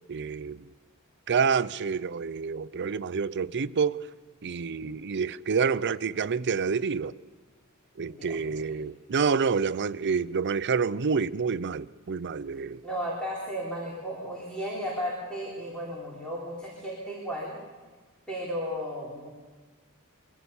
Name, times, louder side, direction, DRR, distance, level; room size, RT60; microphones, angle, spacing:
voice 1, 0.1-0.7 1.3-4.0 4.4-7.1 8.0-12.8, right 5 dB, 50° right, 0.5 m, -28 dB
voice 2, 8.1-8.7 12.8-17.6 18.3-19.3, equal, 5° left, 3.9 m, -34 dB
23.5 x 16.0 x 7.1 m
head